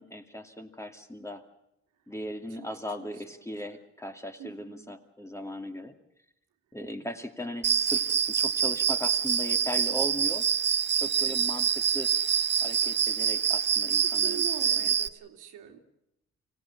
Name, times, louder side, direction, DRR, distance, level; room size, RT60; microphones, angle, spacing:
voice 1, 0.0-1.4 2.1-6.0 6.7-10.4 10.9-12.1 12.6-14.9, left 1 dB, 10° left, 5 dB, 2.4 m, -38 dB
voice 2, 3.0-3.5 4.4-4.9 11.2-11.4 14.0-15.8, right 10 dB, 90° right, 3 dB, 2.8 m, -43 dB
Cricket, 7.6-15.1, right 8 dB, 35° right, 0.7 m, -26 dB
25.0 x 17.5 x 7.2 m, 0.83 s
cardioid pair, 90°, 30 cm